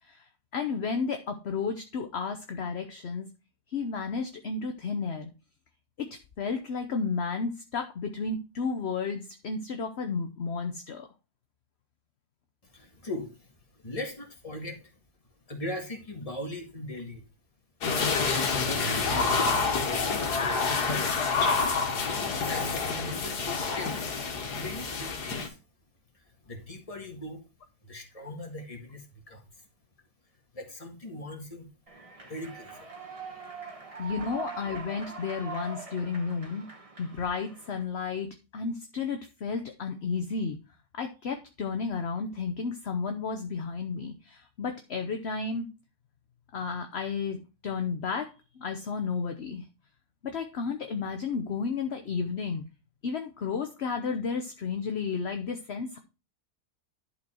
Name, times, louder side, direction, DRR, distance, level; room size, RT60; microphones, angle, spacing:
voice 1, 0.0-3.3 3.7-5.3 6.0-11.1 34.0-36.7 37.0-40.6 40.9-45.7 46.5-49.7 50.2-52.7 53.0-56.0, left 5 dB, 50° left, 6 dB, 1.0 m, -32 dB
voice 2, 12.6-15.0 15.5-17.2 18.2-19.4 20.0-20.3 20.9-21.2 22.4-25.6 26.1-27.4 27.8-29.7 30.5-31.7 32.3-32.9, left 1 dB, 20° left, 3 dB, 1.7 m, -40 dB
sound 1, 17.8-25.5, left 4 dB, 75° left, 1.9 m, -28 dB
Human voice / Clapping / Cheering, 31.9-37.8, right 4 dB, 25° right, 1.2 m, -43 dB
11.0 x 4.6 x 4.4 m, 0.30 s
omnidirectional pair, 1.7 m